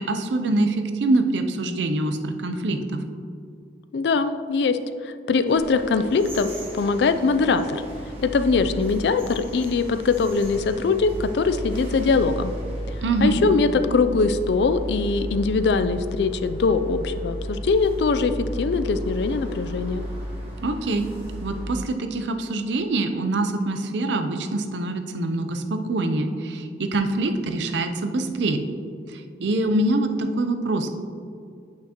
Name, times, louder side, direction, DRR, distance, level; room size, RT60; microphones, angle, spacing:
voice 1, 0.0-3.0 13.0-13.4 20.6-21.1 21.4-28.7 29.1-30.9, right 2 dB, 80° right, 7 dB, 0.5 m, -24 dB
voice 2, 3.9-7.8 8.2-12.5 13.2-20.1, left 4 dB, 70° left, 10 dB, 0.4 m, -22 dB
sound 1, 5.5-21.7, equal, 30° right, 1.5 m, -34 dB
8.6 x 5.8 x 2.9 m, 2.4 s
head